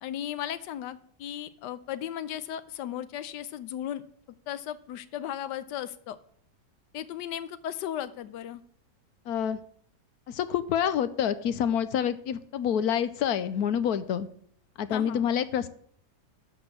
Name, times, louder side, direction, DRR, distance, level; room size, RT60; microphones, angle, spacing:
voice 1, 0.0-4.0 4.5-6.2 6.9-8.6 14.9-15.3, left 11 dB, 90° left, 14 dB, 1.3 m, -36 dB
voice 2, 9.3-9.6 10.3-14.3 14.8-15.7, left 9 dB, 70° left, 14 dB, 1.1 m, -27 dB
12.5 x 4.4 x 7.6 m, 0.63 s
omnidirectional pair, 1.8 m